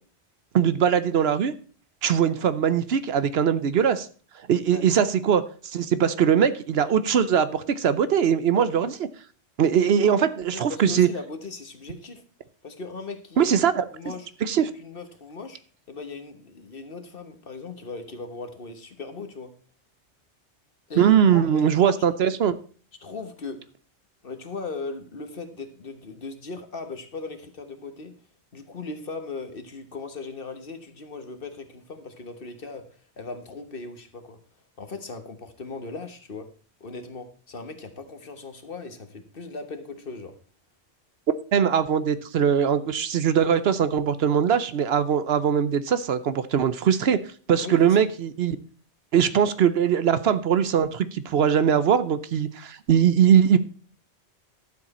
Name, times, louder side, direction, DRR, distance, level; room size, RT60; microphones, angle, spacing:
voice 1, 0.5-1.5 2.0-4.1 4.5-8.9 9.6-11.1 13.4-13.8 14.5-14.7 21.0-22.5 41.5-47.2 47.5-48.6 49.1-53.6, right 8 dB, 65° right, 14 dB, 0.9 m, -21 dB
voice 2, 10.5-12.2 12.6-13.5 13.9-14.3 14.7-15.6 15.9-19.5 20.9-22.0 23.0-23.6 24.2-28.1 28.5-32.8 33.2-34.4 34.8-36.5 36.8-40.3 47.6-48.0, left 3 dB, 55° left, 8 dB, 1.5 m, -38 dB
12.0 x 7.5 x 4.2 m, 0.42 s
omnidirectional pair, 1.1 m